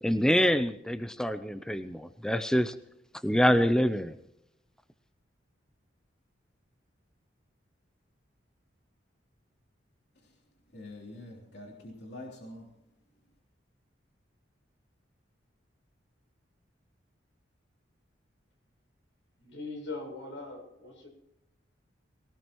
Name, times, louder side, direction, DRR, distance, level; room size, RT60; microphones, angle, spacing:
voice 1, 0.0-2.7 3.2-4.2, equal, 5° left, 11 dB, 0.5 m, -26 dB
voice 2, 10.1-10.4 10.7-12.7, left 1 dB, 60° left, -1 dB, 3.3 m, -46 dB
voice 3, 19.4-21.1, left 3 dB, 80° left, 2 dB, 7.6 m, -41 dB
22.0 x 18.0 x 3.1 m, 0.85 s
head